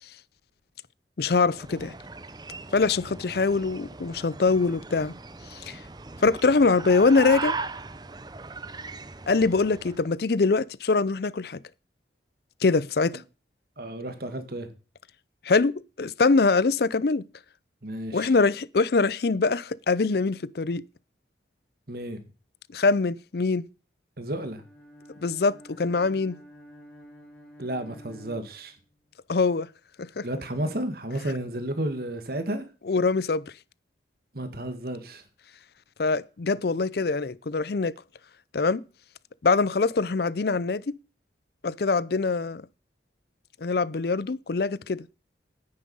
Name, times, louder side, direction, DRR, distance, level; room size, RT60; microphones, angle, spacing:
voice 1, 1.2-1.9 2.7-5.1 5.5-5.8 6.2-7.6 9.3-11.6 12.6-13.2 15.4-17.2 18.1-20.8 22.7-23.7 25.2-26.4 29.3-29.7 30.0-30.3 32.9-33.4 36.0-37.9 38.5-38.8 39.4-41.0 41.6-42.6 43.6-45.1, left 4 dB, 55° left, 0.5 m, -23 dB
sound 1, 1.4-10.1, right 4 dB, 20° right, 0.6 m, -38 dB
voice 2, 13.8-14.7 17.8-18.3 21.9-22.2 24.2-24.6 27.6-28.7 30.2-32.6 34.3-35.2, right 1 dB, 55° right, 1.8 m, -32 dB
Bowed string instrument, 24.5-29.1, equal, 5° left, 2.2 m, -49 dB
9.9 x 9.5 x 5.5 m
head